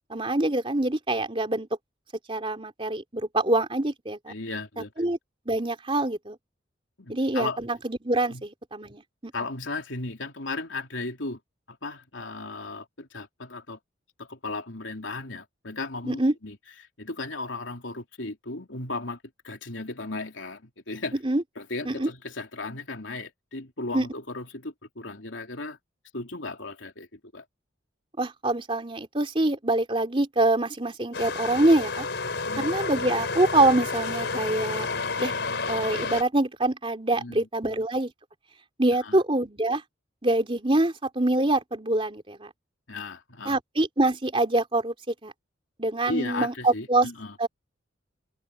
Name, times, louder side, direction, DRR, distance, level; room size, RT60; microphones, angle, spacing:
voice 1, 0.1-1.7 2.3-4.3 5.0-5.2 5.4-6.4 7.1-9.3 16.0-16.3 21.2-21.4 21.8-22.1 23.9-24.1 28.2-32.1 32.6-34.9 35.2-35.3 35.7-38.1 38.8-39.8 40.2-42.5 43.4-45.3 45.8-47.1 47.4-47.5, right 2 dB, 30° right, 3.3 m, -25 dB
voice 2, 4.3-4.9 7.0-7.6 8.3-8.4 9.3-11.4 11.7-13.8 14.2-16.6 17.0-19.2 19.4-21.2 21.6-25.8 26.1-27.4 32.3-32.7 37.1-37.8 39.0-39.2 42.9-43.6 46.0-47.3, left 3 dB, 80° left, 3.4 m, -36 dB
sound 1, 31.1-36.2, left 4 dB, 65° left, 5.0 m, -30 dB
open air
head